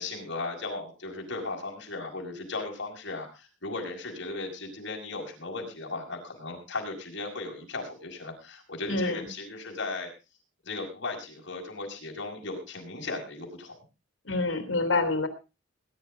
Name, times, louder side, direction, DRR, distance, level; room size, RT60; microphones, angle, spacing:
voice 1, 0.0-10.1 10.6-13.8, left 3 dB, 65° left, 1 dB, 6.2 m, -36 dB
voice 2, 8.9-9.3 14.3-15.3, left 3 dB, 80° left, 9 dB, 3.0 m, -27 dB
21.0 x 11.0 x 3.8 m, 0.30 s
head